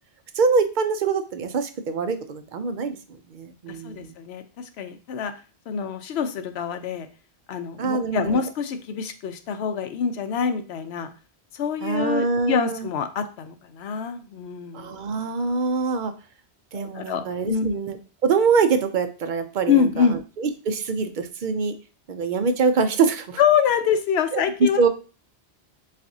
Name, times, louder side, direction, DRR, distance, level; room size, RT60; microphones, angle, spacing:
voice 1, 0.4-3.0 3.3-4.1 7.8-8.4 11.8-12.9 14.7-16.1 16.7-18.0 18.2-20.1 20.4-21.7 22.1-23.4 24.3-24.9, right 5 dB, 55° right, 8 dB, 0.6 m, -24 dB
voice 2, 3.7-5.3 5.7-7.1 7.5-11.1 11.5-15.0 16.7-17.8 19.7-20.2 23.4-24.9, left 7 dB, 80° left, 9 dB, 0.8 m, -25 dB
7.3 x 2.5 x 2.7 m, 0.36 s
omnidirectional pair, 1.1 m